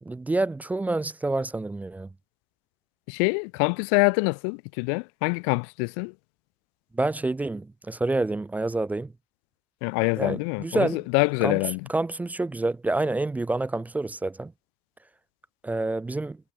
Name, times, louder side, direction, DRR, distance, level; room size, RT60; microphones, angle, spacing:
voice 1, 0.1-2.1 6.9-9.1 10.2-11.0 11.4-11.6 11.9-14.5 15.6-16.4, right 2 dB, 10° right, 0.3 m, -28 dB
voice 2, 3.1-6.1 9.8-11.8, left 40 dB or more, 85° left, 0.7 m, -25 dB
supercardioid pair, 80°, 13 cm